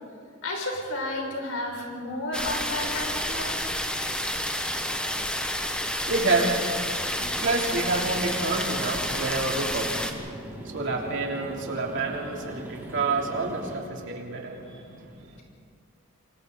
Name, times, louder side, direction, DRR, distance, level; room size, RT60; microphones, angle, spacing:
voice 1, 0.4-3.5, left 1 dB, 70° left, -1 dB, 6.2 m, -32 dB
sound 1, 2.3-10.1, left 1 dB, 5° left, 1.4 m, -30 dB
voice 2, 5.9-15.4, right 3 dB, 60° right, -1 dB, 3.2 m, -29 dB
sound 2, 6.4-13.8, equal, 10° right, 2.5 m, -42 dB
27.5 x 23.5 x 4.1 m, 2.3 s
head